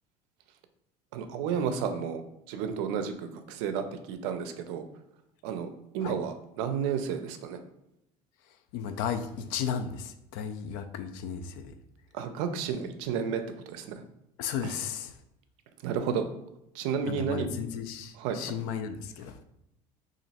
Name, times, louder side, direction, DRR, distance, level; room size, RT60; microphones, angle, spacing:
voice 1, 1.1-2.2 2.5-4.8 5.4-5.7 5.9-7.6 12.1-14.0 14.6-14.7 15.8-16.2 16.7-17.5 18.2-18.5, right 7 dB, 80° right, 8 dB, 0.5 m, -32 dB
voice 2, 8.7-11.7 14.4-15.1 17.1-19.4, left 7 dB, 70° left, 10 dB, 0.4 m, -34 dB
3.0 x 2.6 x 4.1 m, 0.85 s
cardioid pair, 165°, 15 cm